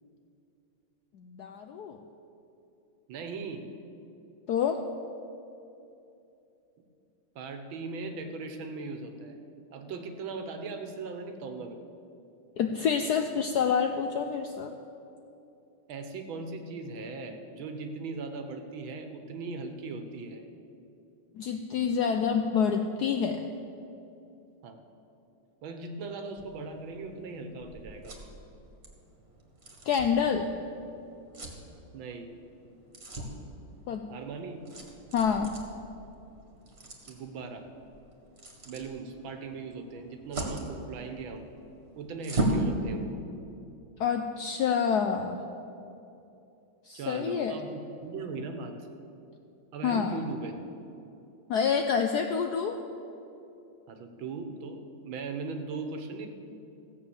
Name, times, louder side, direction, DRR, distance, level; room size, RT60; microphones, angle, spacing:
voice 1, 1.1-2.0 4.5-4.8 12.6-14.7 21.4-23.5 29.9-30.5 33.9-34.0 35.1-35.6 44.0-45.4 46.8-47.6 49.8-50.2 51.5-52.8, left 6 dB, 75° left, 6 dB, 0.9 m, -27 dB
voice 2, 3.1-3.7 7.4-9.4 9.7-11.8 15.9-20.4 24.6-24.8 25.6-28.2 31.9-32.4 34.1-34.6 37.1-37.7 38.7-41.4 42.0-43.1 46.9-48.7 49.7-50.6 53.9-56.3, right 4 dB, 70° right, 6 dB, 1.8 m, -39 dB
sound 1, 26.4-42.7, right 2 dB, 30° right, 1.8 m, -39 dB
15.5 x 7.9 x 7.0 m, 2.8 s
omnidirectional pair, 2.3 m